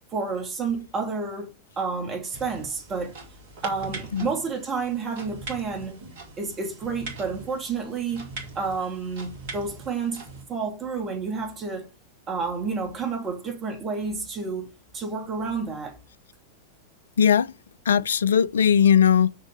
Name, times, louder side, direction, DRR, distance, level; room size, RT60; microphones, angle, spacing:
voice 1, 0.1-3.1 3.6-6.0 6.4-8.3 8.5-10.2 10.5-11.9 12.3-16.0, right 4 dB, 25° right, 2.6 m, -30 dB
sound 1, 2.3-10.4, right 3 dB, 55° right, 2.6 m, -41 dB
voice 2, 17.2-17.5 17.9-19.3, left 8 dB, 65° left, 0.4 m, -19 dB
6.3 x 6.1 x 5.3 m
figure-of-eight pair, 90°, 0 cm